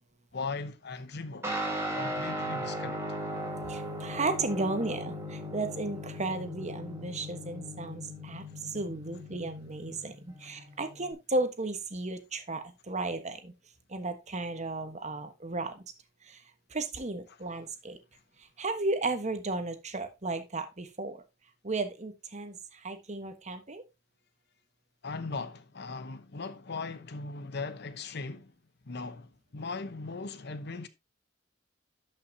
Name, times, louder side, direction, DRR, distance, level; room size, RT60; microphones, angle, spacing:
voice 1, 0.3-1.5 1.9-3.2 10.4-10.6 17.3-17.4 25.0-28.5 28.8-30.9, left 4 dB, 55° left, 0.9 m, -39 dB
Guitar, 1.4-11.1, equal, 15° right, 2.4 m, -38 dB
voice 2, 3.7-13.5 13.9-15.7 16.3-16.4 16.7-18.0 18.6-21.2 21.6-22.6 22.8-23.8, right 2 dB, 35° right, 1.3 m, -34 dB
11.5 x 5.7 x 2.8 m
head